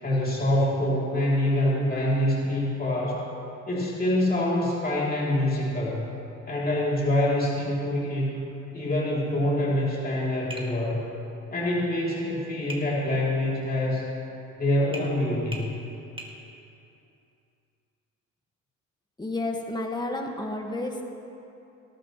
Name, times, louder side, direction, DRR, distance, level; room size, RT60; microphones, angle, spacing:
voice 1, 0.0-3.2 3.7-6.1 6.5-8.4 8.7-11.0 11.5-14.1 14.6-15.8, left 1 dB, 30° left, -5 dB, 2.9 m, -25 dB
Tap, 10.5-10.8 12.7-12.9 14.9-15.1 15.5-15.7 16.2-16.3, right 1 dB, 15° right, 1.8 m, -38 dB
voice 2, 19.2-21.0, left 2 dB, 15° left, 2 dB, 1.5 m, -31 dB
19.0 x 12.0 x 3.0 m, 2.8 s
cardioid pair, 90°, 30 cm